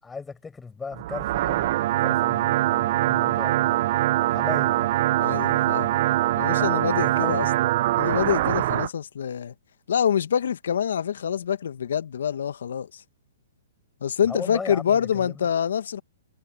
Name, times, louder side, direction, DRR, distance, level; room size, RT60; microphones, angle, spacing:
voice 1, 0.0-4.0 4.3-4.9 6.5-7.4 14.3-15.5, left 4 dB, 10° left, 7.9 m, -38 dB
sound 1, 0.9-8.9, right 15 dB, 55° right, 0.7 m, -23 dB
voice 2, 5.2-6.0 6.4-7.5 8.0-9.5 9.9-13.0 14.0-16.0, left 8 dB, 75° left, 1.6 m, -26 dB
hypercardioid pair, 125°, 0 cm